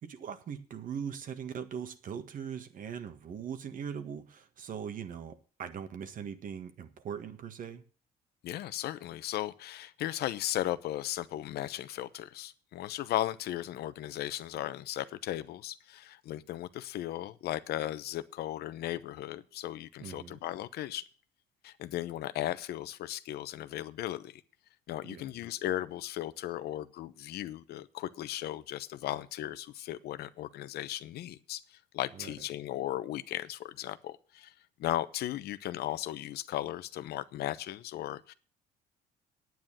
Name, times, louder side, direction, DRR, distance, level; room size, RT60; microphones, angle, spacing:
voice 1, 0.0-7.8 20.0-20.4 25.0-25.2 32.1-32.3, right 7 dB, 50° right, 1.7 m, -40 dB
voice 2, 8.4-21.0 21.6-24.4 24.9-34.5 34.8-38.3, left 13 dB, 70° left, 0.8 m, -36 dB
9.5 x 9.1 x 7.3 m
cardioid pair, 110°, 17 cm